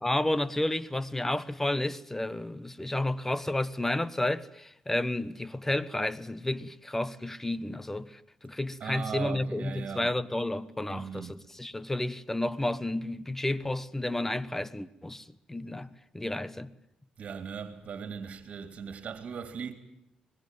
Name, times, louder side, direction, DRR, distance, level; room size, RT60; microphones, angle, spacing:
voice 1, 0.0-15.9 16.1-16.7, left 1 dB, 15° left, 1.2 m, -31 dB
voice 2, 8.8-10.1 10.9-11.4 17.2-19.7, right 6 dB, 55° right, 3.0 m, -38 dB
25.0 x 20.5 x 9.2 m
cardioid pair, 70°, 2 cm